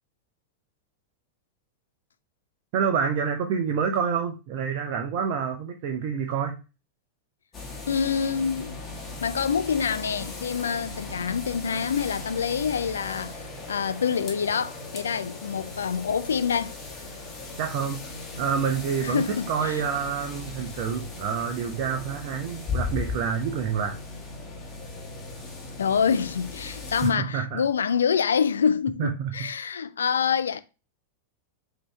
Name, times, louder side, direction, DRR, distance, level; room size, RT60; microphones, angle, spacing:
voice 1, 2.7-6.6 17.6-18.0 18.4-24.0 27.0-27.6 29.0-29.3, right 7 dB, 45° right, 0.6 m, -28 dB
sound 1, 7.5-27.1, left 3 dB, 20° left, 1.2 m, -37 dB
voice 2, 7.9-8.7 9.2-16.7 19.0-19.8 25.8-30.6, left 7 dB, 70° left, 0.3 m, -26 dB
5.3 x 2.8 x 3.2 m
figure-of-eight pair, 90°, 0 cm